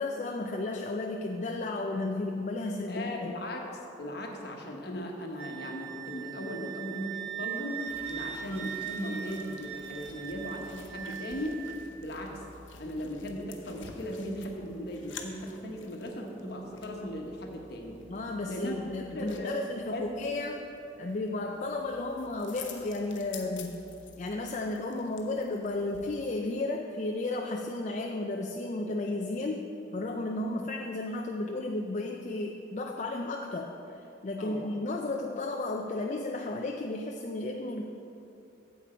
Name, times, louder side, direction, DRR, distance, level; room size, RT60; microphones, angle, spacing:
voice 1, 0.0-3.3 18.1-23.8 24.2-37.8, left 2 dB, 40° left, 1 dB, 0.4 m, -33 dB
voice 2, 2.9-3.6 4.0-11.6 12.0-12.4 12.8-18.0 18.5-19.6 19.9-20.2 34.4-34.6, equal, 55° left, 1 dB, 1.1 m, -37 dB
Wind instrument woodwind instrument, 5.4-11.8, right 9 dB, 65° right, 0.6 m, -40 dB
sound 1, 7.9-26.3, left 5 dB, 85° left, 0.8 m, -51 dB
8.9 x 7.8 x 4.3 m, 2.8 s
head